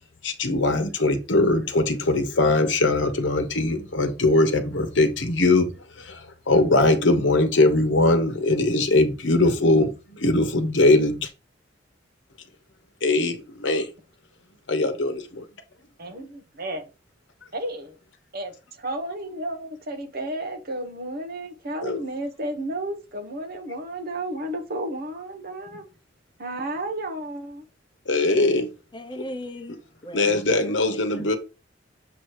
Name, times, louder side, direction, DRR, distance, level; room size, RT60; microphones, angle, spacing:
voice 1, 0.2-11.3 13.0-13.9 14.7-15.4 21.8-22.0 28.1-28.7 30.1-31.4, left 2 dB, 75° left, 1.1 m, -21 dB
voice 2, 16.0-16.9 17.5-18.0 18.3-25.8 26.4-27.6, right 1 dB, 55° right, 1.2 m, -32 dB
voice 3, 28.9-30.7 31.1-31.4, left 1 dB, 25° left, 0.9 m, -38 dB
7.1 x 3.0 x 4.7 m
head